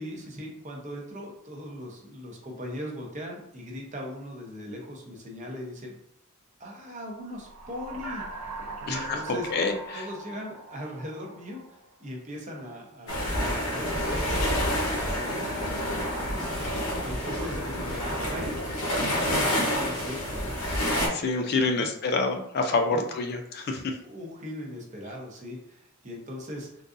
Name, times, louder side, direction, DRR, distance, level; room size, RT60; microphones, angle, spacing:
voice 1, 0.0-6.0 6.6-9.7 9.9-18.7 19.0-20.5 21.5-21.9 22.9-23.1 24.0-26.8, left 1 dB, 35° right, 0 dB, 0.7 m, -40 dB
sound 1, 7.3-11.9, right 3 dB, 85° right, 0.7 m, -40 dB
voice 2, 8.9-10.1 21.1-24.0, left 3 dB, 45° left, 4 dB, 0.4 m, -27 dB
sound 2, 13.1-21.1, equal, 70° left, 1.0 m, -28 dB
3.8 x 2.4 x 2.5 m, 0.76 s
head